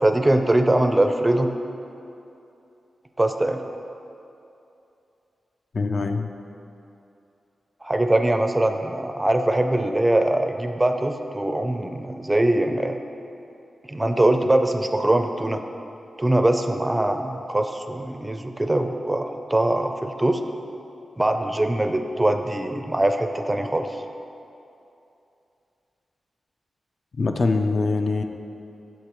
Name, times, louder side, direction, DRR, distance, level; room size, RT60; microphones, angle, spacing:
voice 1, 0.0-1.5 3.2-3.6 7.8-13.0 13.9-15.6 16.2-20.4 21.2-23.9, right 1 dB, 15° right, 6 dB, 0.4 m, -22 dB
voice 2, 5.7-6.3 27.2-28.2, left 3 dB, 55° left, 5 dB, 0.4 m, -23 dB
8.0 x 6.5 x 3.0 m, 2.7 s
cardioid pair, 80°, 0 cm